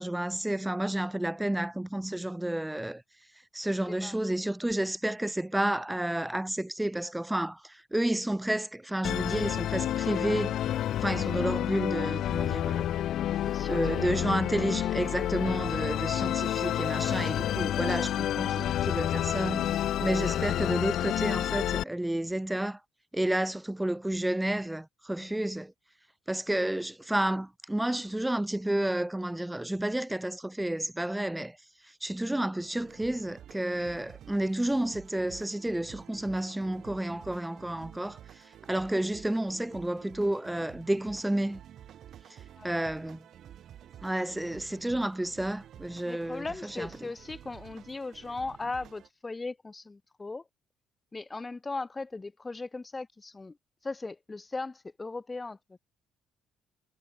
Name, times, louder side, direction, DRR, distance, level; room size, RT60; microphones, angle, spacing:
voice 1, 0.0-3.0 3.5-10.6 11.0-12.9 13.7-22.8 23.1-25.7 26.3-31.6 32.0-38.2 38.7-41.6 42.6-43.2 44.0-47.1, right 1 dB, 10° right, 1.9 m, -31 dB
voice 2, 3.9-4.2 13.3-13.8 42.6-42.8 46.0-50.4 51.1-53.6 53.8-55.8, left 3 dB, 25° left, 3.1 m, -38 dB
Musical instrument, 9.0-21.8, left 11 dB, 65° left, 0.5 m, -29 dB
sound 1, 32.6-49.1, right 10 dB, 60° right, 6.6 m, -51 dB
hypercardioid pair, 55°, 0 cm